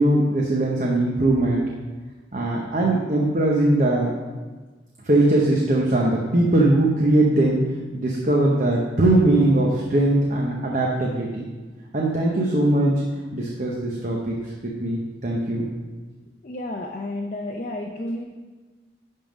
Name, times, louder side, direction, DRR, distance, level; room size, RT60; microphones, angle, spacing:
voice 1, 0.0-1.6 2.3-4.1 5.0-7.6 7.9-11.5 11.9-12.9 13.3-14.4 14.6-15.6, right 1 dB, 40° right, -2 dB, 0.8 m, -20 dB
voice 2, 16.4-18.2, left 1 dB, 40° left, 1 dB, 0.5 m, -31 dB
11.0 x 3.7 x 5.2 m, 1.3 s
head